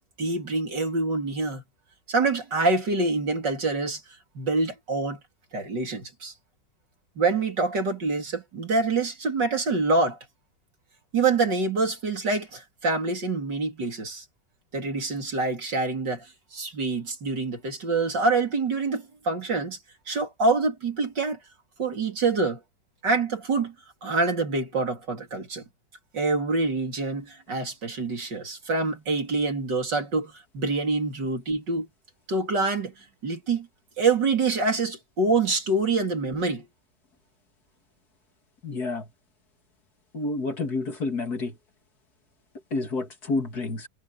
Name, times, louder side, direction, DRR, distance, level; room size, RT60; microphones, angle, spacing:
voice 1, 0.2-1.6 2.1-4.0 4.4-5.2 5.5-6.3 7.2-10.2 11.1-14.2 14.7-19.8 20.1-21.4 21.8-22.6 23.0-23.7 24.0-25.6 26.1-31.9 32.3-33.7 34.0-36.6, right 3 dB, 70° right, 4.2 m, -26 dB
voice 2, 38.6-39.1 40.1-41.6 42.7-43.9, left 3 dB, 55° left, 2.9 m, -29 dB
omnidirectional pair, 2.0 m